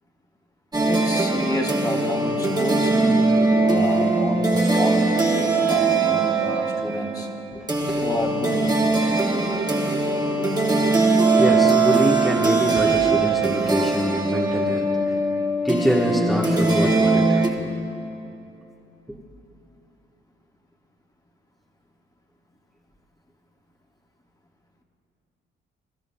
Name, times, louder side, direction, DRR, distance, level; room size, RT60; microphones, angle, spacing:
sound 1, 0.7-17.5, right 3 dB, 20° right, 1.4 m, -21 dB
voice 1, 0.8-5.0 5.3-7.3 8.0-8.7, left 1 dB, 20° left, 1 dB, 1.4 m, -30 dB
voice 2, 7.5-8.1 11.4-14.9 15.6-17.4, equal, ahead, -3 dB, 1.1 m, -25 dB
21.5 x 12.0 x 2.2 m, 2.7 s
cardioid pair, 90°, 20 cm